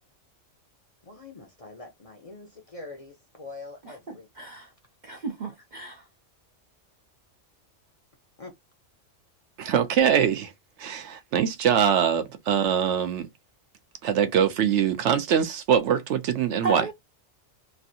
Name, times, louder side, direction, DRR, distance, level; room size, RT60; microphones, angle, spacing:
voice 1, 1.0-4.5 8.4-8.5, left 3 dB, 40° left, 0.6 m, -44 dB
voice 2, 4.1-4.7 5.0-6.0 16.6-16.9, right 4 dB, 55° right, 0.5 m, -32 dB
voice 3, 9.6-10.5 10.8-13.3 14.0-16.8, right 8 dB, 75° right, 0.9 m, -23 dB
3.1 x 2.5 x 2.7 m
omnidirectional pair, 1.3 m